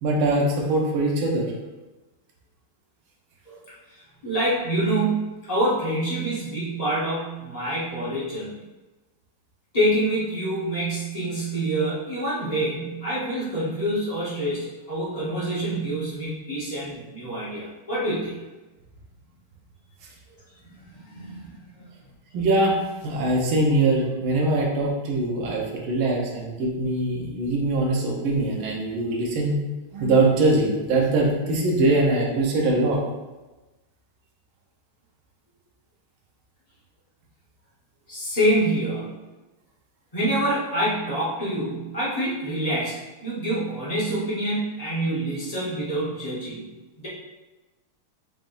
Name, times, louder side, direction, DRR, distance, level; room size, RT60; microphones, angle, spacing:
voice 1, 0.0-1.5 22.3-22.8 23.0-29.5 29.9-33.0, right 2 dB, 70° right, -2 dB, 1.6 m, -22 dB
voice 2, 3.5-8.5 9.7-18.3 20.6-21.9 38.1-39.2 40.1-46.6 47.0-47.1, right 1 dB, 25° left, -9 dB, 0.8 m, -26 dB
5.9 x 3.2 x 2.6 m, 1.1 s
omnidirectional pair, 2.4 m